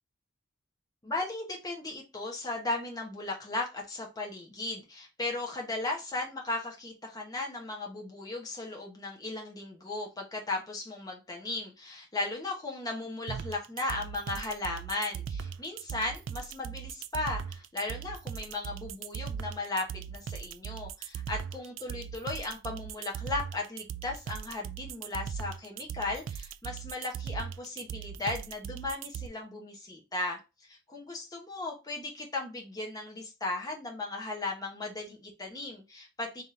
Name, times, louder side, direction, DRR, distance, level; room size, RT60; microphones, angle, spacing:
voice 1, 1.0-36.4, left 2 dB, 20° left, 0 dB, 0.9 m, -36 dB
sound 1, 13.3-29.3, right 8 dB, 60° right, 0.3 m, -39 dB
3.6 x 2.9 x 3.7 m, 0.28 s
head